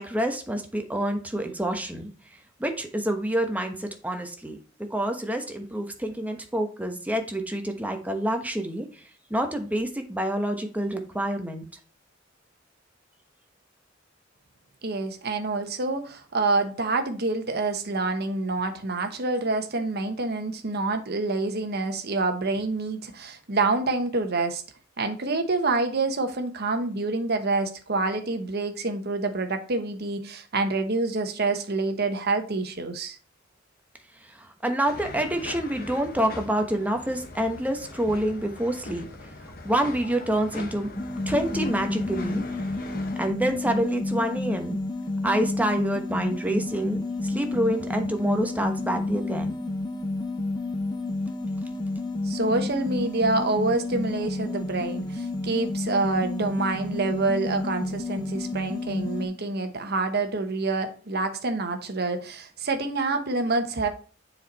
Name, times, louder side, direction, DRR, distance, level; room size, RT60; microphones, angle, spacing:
voice 1, 0.0-2.1 2.6-8.9 9.3-11.6 34.3-39.1 39.6-40.9 41.3-42.4 43.2-44.8 45.2-49.5, right 1 dB, 10° right, 1.1 m, -27 dB
voice 2, 14.8-24.6 25.0-33.2 52.2-63.9, right 3 dB, 55° right, 1.1 m, -27 dB
sound 1, 34.9-43.3, left 2 dB, 50° left, 1.1 m, -41 dB
sound 2, 40.9-59.3, left 2 dB, 20° left, 0.6 m, -30 dB
7.1 x 4.5 x 4.1 m
head